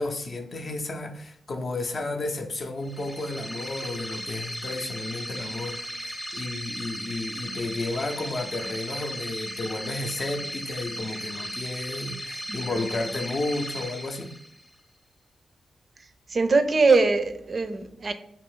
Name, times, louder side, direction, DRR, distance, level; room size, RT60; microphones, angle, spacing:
voice 1, 0.0-14.3, left 2 dB, 55° left, 0.5 m, -32 dB
sound 1, 2.8-14.7, equal, ahead, 0.5 m, -36 dB
voice 2, 12.5-12.9 16.3-18.1, right 3 dB, 50° right, 0.4 m, -22 dB
2.7 x 2.5 x 3.6 m
supercardioid pair, 45°, 0 cm